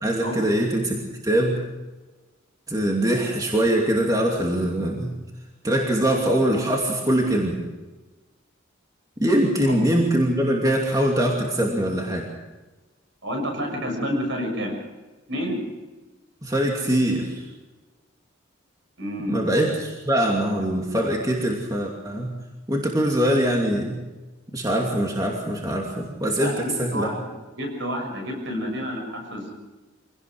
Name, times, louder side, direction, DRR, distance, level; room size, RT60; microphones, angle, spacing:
voice 1, 0.0-1.6 2.7-5.1 5.6-7.6 9.2-12.3 16.4-17.4 19.3-22.3 22.7-24.0 24.5-27.1, right 1 dB, 20° right, -1 dB, 2.7 m, -23 dB
voice 2, 13.2-14.8 15.3-15.6 19.0-19.4 26.4-27.3 27.5-29.5, equal, 65° right, 3 dB, 6.6 m, -29 dB
25.0 x 18.0 x 6.4 m, 1.2 s
head